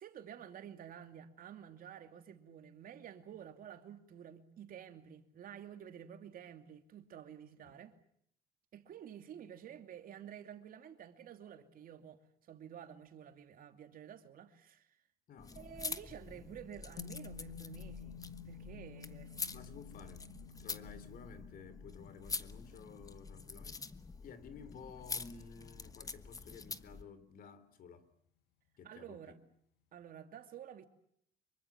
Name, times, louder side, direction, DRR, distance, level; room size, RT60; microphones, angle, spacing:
voice 1, 0.0-8.0 8.7-15.0 15.5-18.2 18.4-19.3 28.8-29.4 29.9-30.8, right 9 dB, 60° right, 2.7 m, -51 dB
voice 2, 15.3-15.6 19.5-20.2 20.6-23.9 24.2-28.1 28.8-29.3, left 6 dB, 55° left, 3.1 m, -53 dB
sound 1, 15.4-27.0, left 4 dB, 20° left, 1.2 m, -46 dB
sound 2, 17.0-25.4, left 7 dB, 85° left, 1.9 m, -53 dB
25.5 x 23.5 x 7.3 m
cardioid pair, 110°, 17 cm